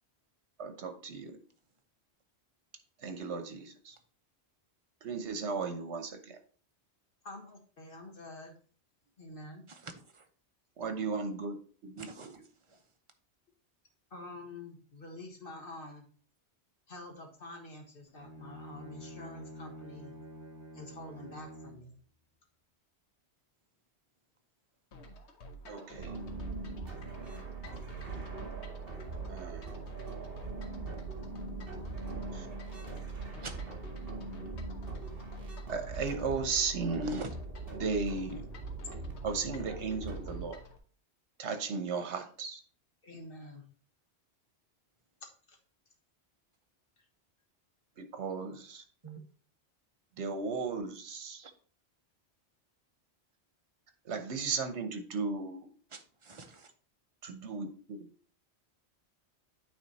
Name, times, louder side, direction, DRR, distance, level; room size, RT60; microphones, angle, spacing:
voice 1, 0.6-1.4 3.0-3.9 5.0-6.4 10.8-11.6 11.8-12.3 25.6-26.2 29.3-29.8 32.3-32.5 35.7-37.2 37.8-38.4 39.2-40.6 41.4-42.6 48.0-48.8 50.2-51.5 54.0-55.7 57.2-58.1, right 4 dB, 75° right, 1.2 m, -35 dB
voice 2, 7.2-8.5 9.2-9.6 14.1-16.0 16.9-20.2 20.7-21.9 43.0-43.7 45.2-45.6 47.0-47.1, left 2 dB, 55° left, 1.5 m, -47 dB
voice 3, 9.7-10.3 12.0-12.4 12.7-12.8 33.4-33.5 37.0-37.3 49.0-49.2 55.9-56.7, right 4 dB, 30° right, 0.8 m, -45 dB
Bowed string instrument, 18.1-21.9, equal, 15° right, 2.2 m, -48 dB
sound 1, 24.9-40.8, equal, 75° left, 1.2 m, -52 dB
sound 2, 26.0-40.4, right 3 dB, 55° right, 1.7 m, -41 dB
8.9 x 3.4 x 4.1 m
omnidirectional pair, 1.1 m